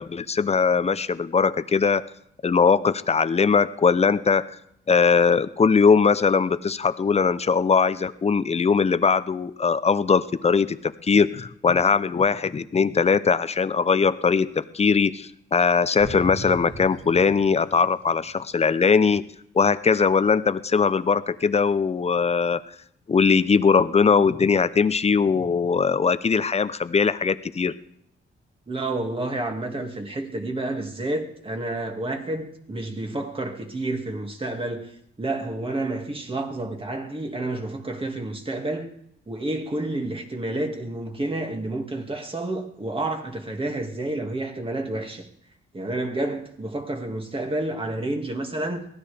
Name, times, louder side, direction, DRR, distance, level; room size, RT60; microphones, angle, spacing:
voice 1, 0.0-2.1 2.4-4.5 4.9-19.2 19.5-22.6 23.1-27.8, left 5 dB, 30° left, 0.7 m, -20 dB
sound 1, 16.0-18.7, right 2 dB, 70° right, 5.1 m, -38 dB
voice 2, 28.7-38.9 39.3-45.3 45.7-48.9, right 2 dB, 25° right, 2.2 m, -30 dB
23.0 x 16.5 x 3.5 m
cardioid pair, 90°, 21 cm